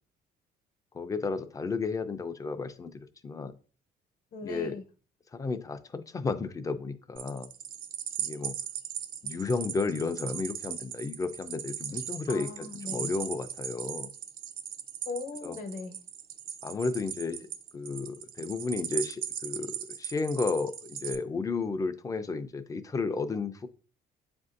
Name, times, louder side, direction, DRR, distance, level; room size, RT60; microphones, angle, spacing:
voice 1, 0.9-3.5 4.4-4.8 5.3-7.5 8.2-8.5 9.2-12.5 12.9-14.1 15.4-15.6 16.6-17.5 17.7-23.7, left 4 dB, 20° left, 0.4 m, -33 dB
voice 2, 4.3-4.8 12.3-13.1 15.0-16.0, left 3 dB, 55° left, 0.8 m, -38 dB
sound 1, 7.2-21.2, right 9 dB, 60° right, 0.4 m, -38 dB
7.2 x 2.6 x 2.5 m
cardioid pair, 110°, 17 cm